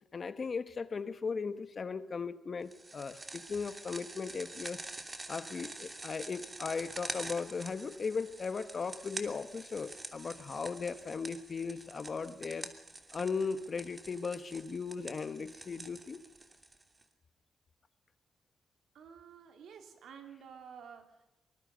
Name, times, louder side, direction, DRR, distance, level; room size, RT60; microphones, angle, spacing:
voice 1, 0.1-4.8 5.3-12.7 13.1-16.2, left 5 dB, 45° left, 12 dB, 1.4 m, -37 dB
sound 1, 2.7-17.0, right 2 dB, 25° right, 2.9 m, -46 dB
voice 2, 18.9-21.3, right 7 dB, 80° right, 6 dB, 3.0 m, -51 dB
23.5 x 21.0 x 5.3 m, 1.0 s
cardioid pair, 85°, 0 cm